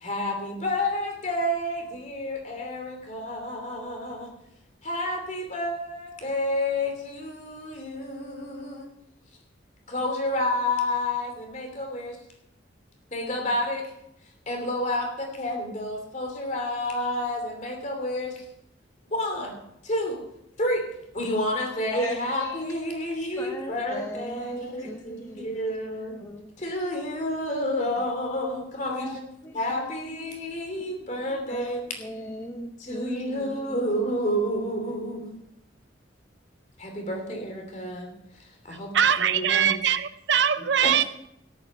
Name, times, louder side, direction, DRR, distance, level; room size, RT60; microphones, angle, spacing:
voice 1, 0.0-4.3 4.8-8.9 9.9-12.2 13.1-13.9 14.5-18.4 19.1-19.5 19.8-20.2 20.6-20.9 21.1-26.2 26.6-29.3 29.5-31.8 32.8-35.4 36.8-38.1 38.6-39.8 40.8-40.9, left 1 dB, 40° left, 3 dB, 2.9 m, -30 dB
voice 2, 21.9-22.6 23.1-25.6 26.2-26.5 28.0-28.1 28.8-29.2 29.4-29.6 30.8-30.9 31.5-31.7 32.0-34.0, equal, 15° left, 3 dB, 0.9 m, -39 dB
voice 3, 38.7-41.0, right 8 dB, 65° right, 13 dB, 0.6 m, -22 dB
13.5 x 11.0 x 5.5 m, 0.80 s
head